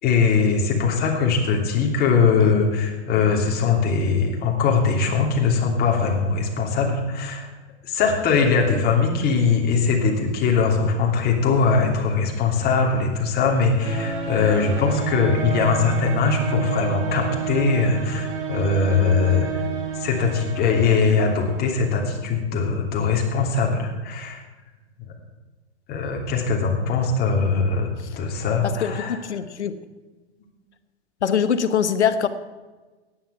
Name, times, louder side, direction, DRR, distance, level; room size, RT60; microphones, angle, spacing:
voice 1, 0.0-7.5 7.8-19.6 19.9-24.4 25.0-25.1 25.9-27.9 28.2-29.2, left 5 dB, 25° left, 1 dB, 2.9 m, -21 dB
sound 1, 13.8-22.2, right 6 dB, 50° right, 3.4 m, -30 dB
voice 2, 28.6-29.8 31.2-32.3, left 7 dB, 70° left, 12 dB, 1.2 m, -23 dB
14.5 x 10.5 x 5.8 m, 1.2 s
hypercardioid pair, 115°, 35 cm